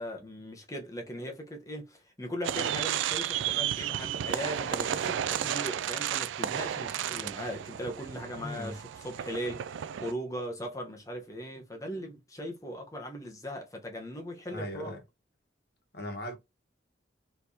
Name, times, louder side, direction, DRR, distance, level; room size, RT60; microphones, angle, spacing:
voice 1, 0.0-15.0, equal, 20° left, 1.0 m, -39 dB
sound 1, 2.4-10.1, right 10 dB, 85° right, 0.3 m, -33 dB
voice 2, 8.3-8.8 14.5-15.0 15.9-16.4, left 1 dB, 55° left, 1.3 m, -38 dB
4.4 x 3.4 x 2.8 m
head